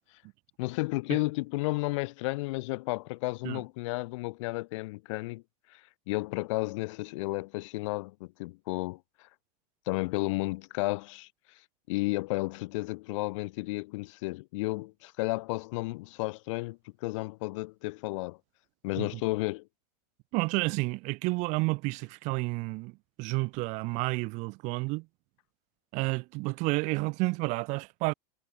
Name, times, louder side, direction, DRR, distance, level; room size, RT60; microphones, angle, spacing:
voice 1, 0.6-5.4 5.7-5.8 6.1-9.0 9.9-11.3 11.9-18.4 18.8-19.7, left 22 dB, 50° left, 5.3 m, -32 dB
voice 2, 20.3-22.9 23.2-25.0 25.9-28.1, right 26 dB, 35° right, 4.3 m, -30 dB
supercardioid pair, 170°, 20 cm